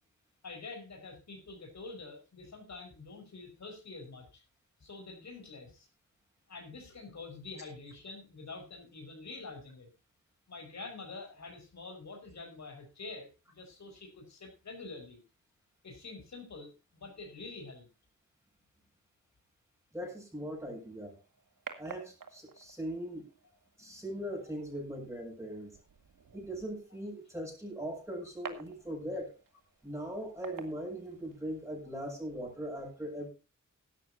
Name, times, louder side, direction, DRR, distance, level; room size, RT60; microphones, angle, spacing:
voice 1, 0.4-4.4 4.8-5.9 6.5-9.9 10.5-15.2 15.8-17.9, left 3 dB, 60° left, 3 dB, 5.2 m, -46 dB
voice 2, 19.9-21.1 21.8-23.3 23.8-25.8 26.3-29.3 29.8-33.3, equal, 10° right, 1 dB, 7.3 m, -40 dB
sound 1, 20.7-31.7, right 6 dB, 85° right, 1.9 m, -52 dB
16.5 x 13.0 x 2.7 m, 0.28 s
wide cardioid pair, 100°, 32 cm